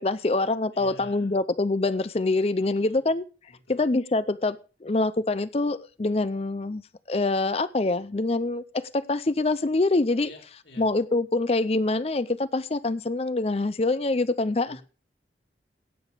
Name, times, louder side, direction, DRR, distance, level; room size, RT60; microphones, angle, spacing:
voice 1, 0.0-3.2 3.7-6.8 7.1-10.3 10.8-14.8, left 2 dB, 35° left, 0.5 m, -25 dB
voice 2, 0.7-1.3 2.6-3.1 3.7-3.8 10.2-10.9 14.7-14.8, left 1 dB, 85° left, 5.5 m, -48 dB
17.0 x 7.0 x 5.0 m
head